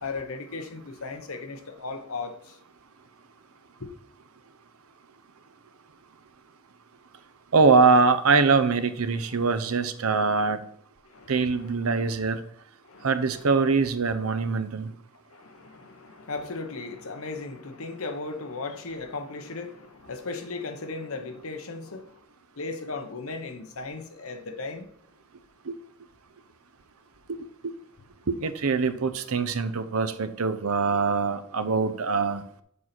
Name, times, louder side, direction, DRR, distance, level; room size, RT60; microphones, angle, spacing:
voice 1, 0.0-2.6 3.8-3.9 9.6-9.8 10.1-10.5 11.0-12.2 12.8-13.8 15.3-22.2 22.5-24.9 28.2-28.3, left 3 dB, 80° left, 1.0 m, -37 dB
voice 2, 7.5-10.6 11.3-12.4 13.0-14.9 25.7-25.8 27.6-27.7 28.3-32.4, right 4 dB, 80° right, 0.7 m, -23 dB
7.2 x 4.1 x 6.0 m
head